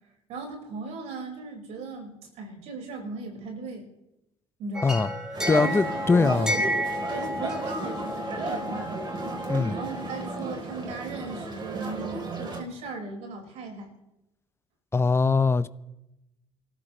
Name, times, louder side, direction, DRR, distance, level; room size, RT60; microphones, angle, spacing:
voice 1, 0.3-3.9 4.6-5.1 5.6-6.6 7.1-9.0 9.7-13.9, right 3 dB, 75° right, 5.6 m, -37 dB
sound 1, 4.7-10.4, left 1 dB, 5° right, 5.1 m, -32 dB
sound 2, 5.3-12.6, right 3 dB, 45° right, 4.1 m, -34 dB
voice 2, 5.5-6.5 9.5-9.8 14.9-15.7, left 4 dB, 20° left, 0.8 m, -22 dB
28.0 x 14.0 x 3.3 m
supercardioid pair, 70°, 11 cm